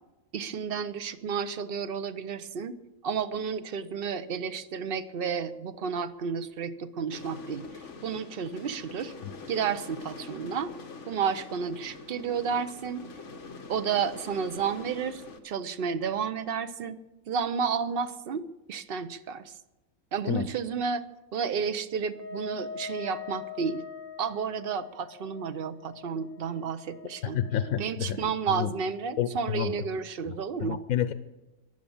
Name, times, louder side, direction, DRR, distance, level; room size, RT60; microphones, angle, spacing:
voice 1, 0.3-2.8 3.0-7.7 8.0-9.1 9.5-10.7 11.1-13.0 13.7-17.0 17.3-18.4 18.7-19.5 20.1-21.0 21.3-23.8 24.2-27.4 27.8-30.8, right 6 dB, 50° right, 11 dB, 0.9 m, -31 dB
sound 1, 7.1-15.4, left 4 dB, 60° left, 1.6 m, -44 dB
Wind instrument woodwind instrument, 22.1-27.7, left 5 dB, 70° right, 4.5 m, -43 dB
voice 2, 27.3-28.7 29.2-29.7 30.3-30.4 30.6-31.1, left 9 dB, 85° left, 11 dB, 1.2 m, -29 dB
16.0 x 11.0 x 7.1 m, 1.0 s
omnidirectional pair, 1.4 m